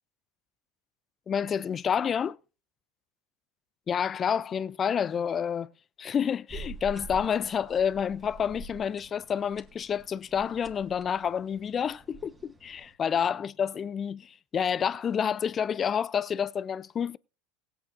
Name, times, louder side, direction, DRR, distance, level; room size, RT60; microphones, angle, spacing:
voice 1, 1.3-2.4 3.9-5.7 6.0-17.2, left 7 dB, 30° left, 0.5 m, -29 dB
sound 1, 6.5-12.9, right 2 dB, 10° right, 1.8 m, -47 dB
19.5 x 8.7 x 2.6 m
figure-of-eight pair, 80°, 0 cm